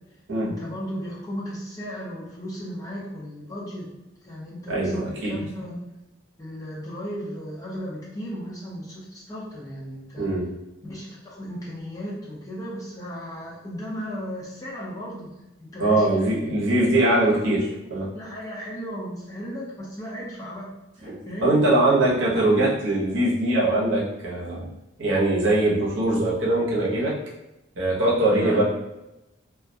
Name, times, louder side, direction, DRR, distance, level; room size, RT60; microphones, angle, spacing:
voice 1, 0.4-3.9 4.2-5.8 6.4-10.3 10.8-16.1 16.9-17.8 18.1-20.7 21.0-21.6 28.3-28.6, equal, 15° left, -6 dB, 0.6 m, -35 dB
voice 2, 4.7-5.4 10.2-10.5 15.8-18.1 21.1-24.7 25.0-27.2 27.8-28.6, right 1 dB, 65° right, -5 dB, 0.7 m, -22 dB
2.3 x 2.1 x 2.6 m, 0.95 s
head